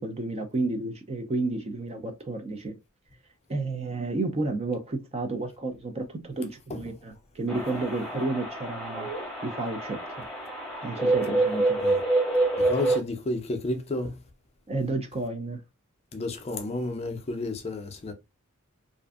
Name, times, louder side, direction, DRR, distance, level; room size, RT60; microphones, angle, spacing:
voice 1, 0.0-2.8 3.5-9.1 9.4-10.3 10.8-11.8 14.7-15.6, right 3 dB, 30° right, 0.4 m, -31 dB
sound 1, 7.5-13.0, right 2 dB, 5° left, 0.8 m, -27 dB
voice 2, 12.6-14.2 16.1-18.1, left 2 dB, 30° left, 0.4 m, -31 dB
2.5 x 2.4 x 2.3 m
head